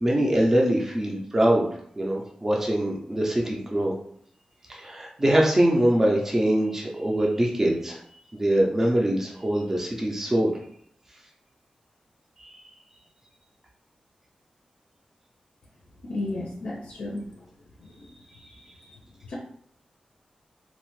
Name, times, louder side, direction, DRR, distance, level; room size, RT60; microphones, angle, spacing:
voice 1, 0.0-1.7 2.0-3.9 4.7-8.0 8.3-10.6 12.4-12.6, right 1 dB, 20° right, -2 dB, 0.4 m, -23 dB
voice 2, 16.0-17.2 17.8-18.1 19.3-19.4, left 2 dB, 70° left, -2 dB, 0.4 m, -33 dB
2.7 x 2.1 x 3.0 m, 0.64 s
wide cardioid pair, 170°, 2 cm